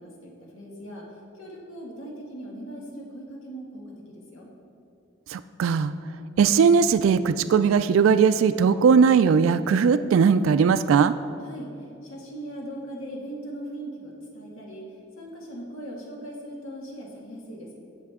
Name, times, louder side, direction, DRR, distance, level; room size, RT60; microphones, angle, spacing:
voice 1, 0.0-4.5 11.4-17.8, right 1 dB, 90° left, -2 dB, 2.0 m, -39 dB
voice 2, 5.3-5.9 6.4-11.1, right 6 dB, 80° right, 12 dB, 0.3 m, -19 dB
17.5 x 6.6 x 3.6 m, 2.7 s
head